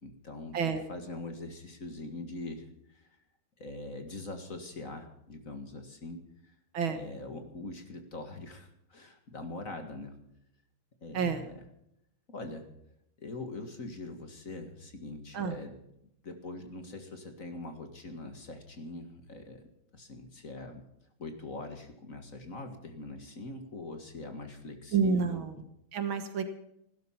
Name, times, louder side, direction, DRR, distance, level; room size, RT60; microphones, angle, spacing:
voice 1, 0.0-0.6 0.9-3.1 3.6-6.5 6.9-10.2 11.0-11.5 12.3-12.7 13.2-15.8 16.2-19.6 19.9-20.8 21.2-25.4, left 2 dB, 40° left, 5 dB, 2.1 m, -43 dB
voice 2, 6.7-7.1 11.1-11.5 15.3-15.6 24.9-25.6 25.9-26.5, right 5 dB, 65° right, 9 dB, 2.2 m, -29 dB
16.5 x 12.5 x 5.7 m, 0.78 s
omnidirectional pair, 2.4 m